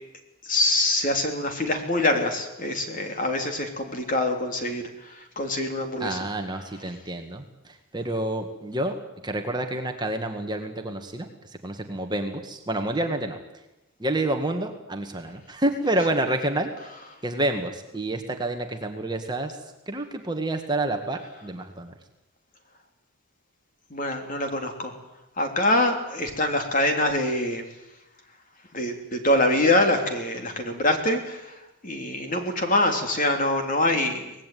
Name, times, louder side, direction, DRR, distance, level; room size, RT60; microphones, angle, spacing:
voice 1, 0.4-6.2 23.9-25.0 25.4-27.6 28.7-31.5 31.8-34.3, left 1 dB, 35° left, 5 dB, 3.4 m, -24 dB
voice 2, 6.0-8.9 9.2-11.3 11.6-13.4 14.0-16.7 17.2-19.6 19.9-21.9, right 1 dB, 20° right, 5 dB, 1.9 m, -28 dB
25.0 x 19.0 x 9.4 m, 0.97 s
head